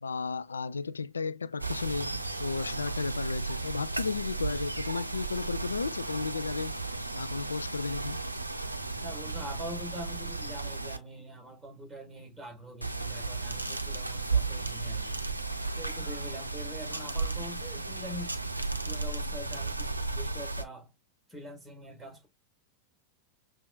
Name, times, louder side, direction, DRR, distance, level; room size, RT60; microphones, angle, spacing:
voice 1, 0.0-6.8 7.1-8.2, left 4 dB, 75° left, 0.3 m, -34 dB
sound 1, 1.6-11.0 12.8-20.6, right 3 dB, 85° right, 0.5 m, -34 dB
voice 2, 9.0-15.3 15.8-18.4 18.7-20.9 21.3-22.3, equal, 5° right, 1.7 m, -44 dB
6.8 x 2.5 x 2.3 m
figure-of-eight pair, 90°, 0 cm